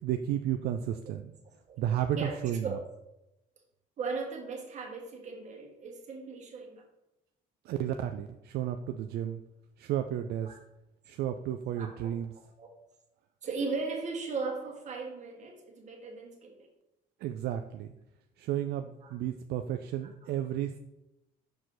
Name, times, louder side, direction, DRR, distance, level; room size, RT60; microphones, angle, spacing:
voice 1, 0.0-1.3 1.8-2.8 7.6-9.4 9.8-10.5 11.0-12.3 17.2-17.9 18.4-20.8, right 10 dB, 70° right, 7 dB, 0.4 m, -32 dB
voice 2, 4.0-6.8 10.4-10.5 11.7-12.1 12.6-12.7 13.4-16.7 19.0-19.1, right 4 dB, 45° right, 0 dB, 1.7 m, -37 dB
6.4 x 4.7 x 3.9 m, 0.91 s
cardioid pair, 110°, 17 cm